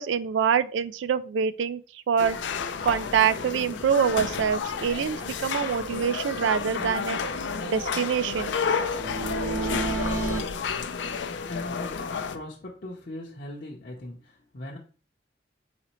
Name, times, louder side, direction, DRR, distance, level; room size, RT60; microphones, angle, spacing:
voice 1, 0.0-1.8 2.1-2.4 2.8-7.2 7.6-8.7, right 7 dB, 90° right, 0.3 m, -25 dB
sound 1, 2.2-12.4, left 6 dB, 85° left, 0.4 m, -31 dB
sound 2, 2.8-10.8, right 1 dB, 25° right, 0.6 m, -51 dB
sound 3, 4.0-4.1 4.4-4.5 4.8-4.9 5.2-5.3 5.6-6.9 7.2-10.4, right 3 dB, 75° right, 1.3 m, -33 dB
voice 2, 11.5-14.8, left 1 dB, 50° left, 0.7 m, -39 dB
4.0 x 4.0 x 3.0 m
head